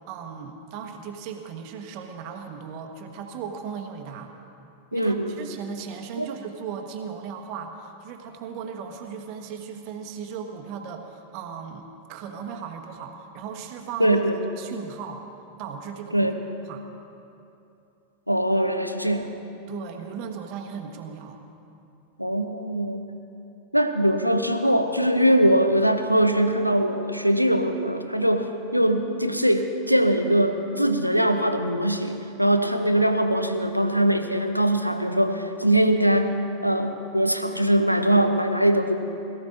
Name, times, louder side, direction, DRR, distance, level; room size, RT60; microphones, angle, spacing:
voice 1, 0.1-4.3 4.9-11.8 12.1-14.2 14.6-15.2 15.6-16.3 16.7-16.8 19.7-21.4, right 7 dB, 45° right, 4 dB, 1.4 m, -37 dB
voice 2, 4.9-5.4 6.2-6.3 14.0-14.4 16.1-16.4 18.3-19.3 22.2-23.1 23.7-36.3 36.6-39.0, right 1 dB, 90° right, 7 dB, 0.8 m, -22 dB
22.0 x 14.5 x 2.7 m, 2.8 s
figure-of-eight pair, 90°, 0 cm